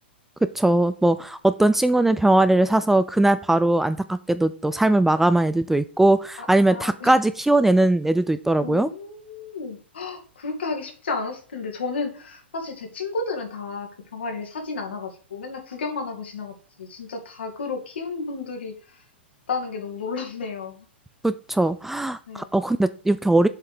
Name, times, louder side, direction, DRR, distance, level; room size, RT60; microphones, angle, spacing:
voice 1, 0.6-8.9 21.2-23.5, right 2 dB, 5° right, 12 dB, 0.4 m, -20 dB
voice 2, 6.4-7.2 8.6-19.0 19.5-20.9 22.3-22.5, left 4 dB, 70° left, 3 dB, 2.6 m, -32 dB
7.6 x 5.5 x 5.0 m, 0.41 s
figure-of-eight pair, 105°, 6 cm